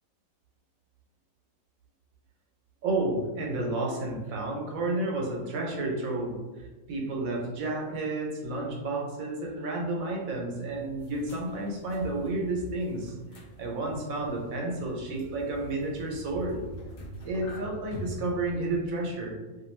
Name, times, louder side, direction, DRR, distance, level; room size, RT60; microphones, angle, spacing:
voice 1, 2.8-16.6 17.2-19.4, right 2 dB, 85° right, -1 dB, 1.1 m, -31 dB
sound 1, 10.6-19.1, equal, 60° left, 0.6 m, -45 dB
2.6 x 2.3 x 3.1 m, 1.2 s
omnidirectional pair, 1.4 m